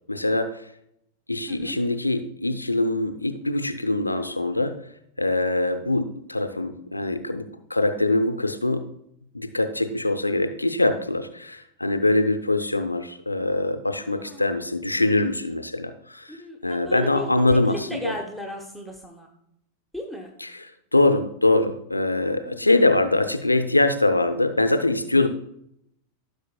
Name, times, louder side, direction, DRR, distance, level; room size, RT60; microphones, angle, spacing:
voice 1, 0.1-0.6 1.3-4.7 5.2-8.8 9.3-16.3 16.6-18.1 20.9-25.3, left 2 dB, 85° left, 9 dB, 0.5 m, -23 dB
voice 2, 14.0-14.4 16.3-19.3 19.9-20.3 22.4-22.8 25.2-25.3, left 1 dB, 5° right, 2 dB, 1.0 m, -36 dB
15.0 x 6.6 x 2.2 m, 0.76 s
figure-of-eight pair, 90°, 0 cm